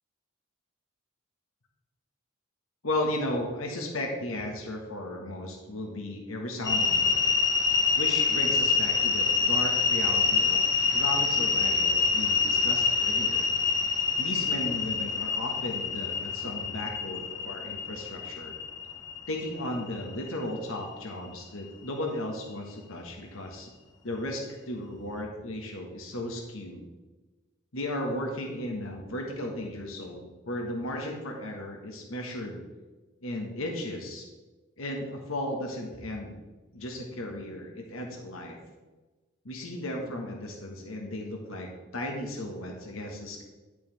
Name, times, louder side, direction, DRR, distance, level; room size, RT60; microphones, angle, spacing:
voice 1, 2.8-7.2 8.0-10.6 10.9-13.5 14.2-18.5 19.3-23.7 24.0-26.8 27.7-32.6 33.2-34.3 34.8-36.3 36.7-38.6 39.4-43.4, left 1 dB, 85° left, 1 dB, 1.4 m, -35 dB
sound 1, 6.6-20.8, left 5 dB, 20° left, 0.7 m, -26 dB
11.0 x 6.8 x 3.4 m, 1.2 s
head